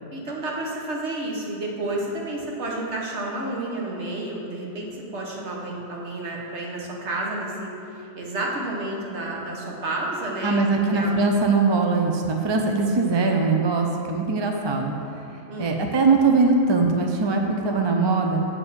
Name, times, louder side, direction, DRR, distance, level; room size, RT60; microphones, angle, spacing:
voice 1, 0.1-10.6 10.9-11.1 15.5-15.9, right 2 dB, 80° right, -2 dB, 1.5 m, -30 dB
voice 2, 10.4-15.0 15.6-18.5, right 3 dB, 35° right, 2 dB, 0.4 m, -21 dB
7.3 x 4.4 x 6.9 m, 2.6 s
omnidirectional pair, 1.2 m